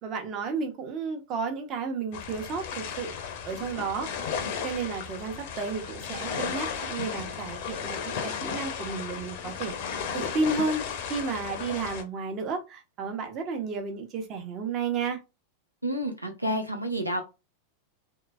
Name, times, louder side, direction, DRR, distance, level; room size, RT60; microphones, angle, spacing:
voice 1, 0.0-3.1 3.4-4.1 4.6-9.7 10.1-10.8 11.1-15.2, right 4 dB, 35° right, 0.9 m, -32 dB
sound 1, 2.1-12.0, left 7 dB, 50° left, 0.7 m, -34 dB
voice 2, 15.8-17.2, equal, 85° right, 0.8 m, -29 dB
3.3 x 2.9 x 2.4 m
figure-of-eight pair, 90°, 0 cm